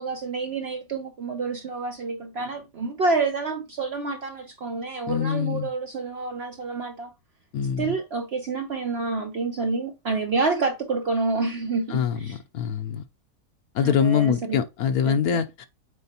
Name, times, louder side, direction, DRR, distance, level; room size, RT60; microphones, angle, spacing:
voice 1, 0.0-7.1 7.8-12.4 13.8-14.4 15.0-15.4, right 3 dB, 55° right, 0.7 m, -28 dB
voice 2, 5.1-5.7 7.5-7.9 11.9-13.0 13.7-15.7, left 8 dB, 70° left, 1.1 m, -24 dB
8.1 x 4.4 x 2.8 m
omnidirectional pair, 1.8 m